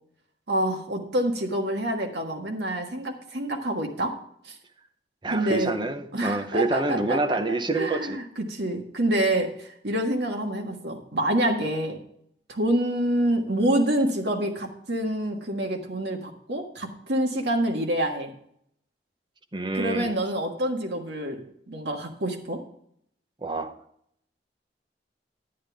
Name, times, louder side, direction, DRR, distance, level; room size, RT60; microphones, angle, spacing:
voice 1, 0.5-4.1 4.4-4.6 5.3-5.7 6.1-12.0 12.5-18.3 19.7-22.6, right 1 dB, 70° right, 3 dB, 1.6 m, -27 dB
voice 2, 5.2-8.2 19.5-20.1 23.4-23.7, right 2 dB, 25° right, 5 dB, 0.8 m, -27 dB
10.0 x 9.5 x 3.4 m, 0.71 s
head